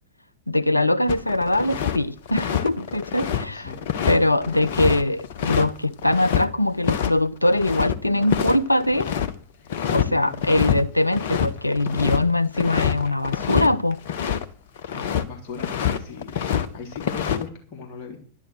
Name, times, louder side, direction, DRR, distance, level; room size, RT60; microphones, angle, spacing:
voice 1, 0.5-3.7 4.1-9.1 9.9-14.0, left 1 dB, 85° left, 0.6 m, -22 dB
sound 1, 1.1-2.0 2.3-6.5 6.8-7.1 7.4-9.3 9.7-10.1 10.3-10.8 11.1-14.5 14.8-15.2 15.6-16.7 16.9-17.4, left 9 dB, 55° left, 1.1 m, -26 dB
voice 2, 3.5-3.9 9.5-10.4 14.9-18.2, left 5 dB, 35° left, 3.6 m, -38 dB
11.0 x 11.0 x 6.3 m
figure-of-eight pair, 90°, 0 cm